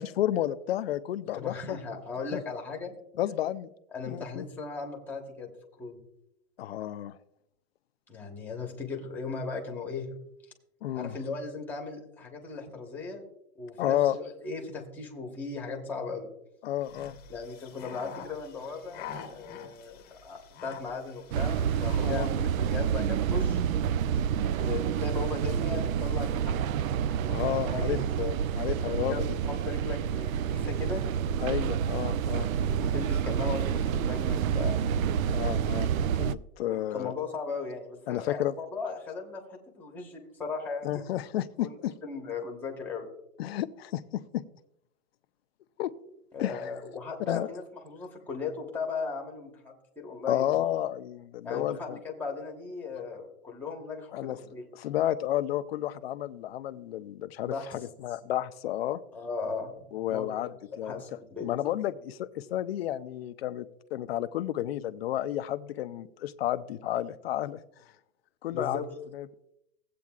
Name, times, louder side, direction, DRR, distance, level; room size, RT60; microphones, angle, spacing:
voice 1, 0.0-1.8 2.3-2.4 3.2-3.7 4.1-4.4 6.6-7.2 10.8-11.2 13.8-14.2 16.6-17.2 22.0-22.3 27.3-28.0 28.5-29.2 31.4-32.5 35.3-35.9 36.2-37.1 38.1-38.5 40.8-41.9 43.4-44.4 45.8-45.9 46.4-46.7 47.3-47.5 50.3-52.0 54.1-54.4 54.7-59.0 59.9-61.0 61.4-63.7 63.9-67.6 68.4-68.8 69.1-69.3, left 12 dB, 45° left, 13 dB, 0.4 m, -31 dB
voice 2, 1.3-2.9 3.9-5.5 5.8-6.0 8.1-10.1 10.9-13.2 13.6-16.3 17.3-23.6 24.6-26.6 27.2-28.4 28.8-31.0 32.8-34.8 35.0-35.1 36.6-41.0 41.6-43.1 46.3-50.6 51.4-54.7 57.4-57.8 59.1-60.6 60.8-61.5 68.5-68.8, left 4 dB, 5° left, 1 dB, 1.1 m, -37 dB
sound 1, 16.8-22.4, left 7 dB, 20° left, 0.9 m, -46 dB
sound 2, 21.3-36.3, right 8 dB, 65° right, 0.5 m, -28 dB
16.5 x 8.4 x 2.4 m, 0.80 s
hypercardioid pair, 150°, 46 cm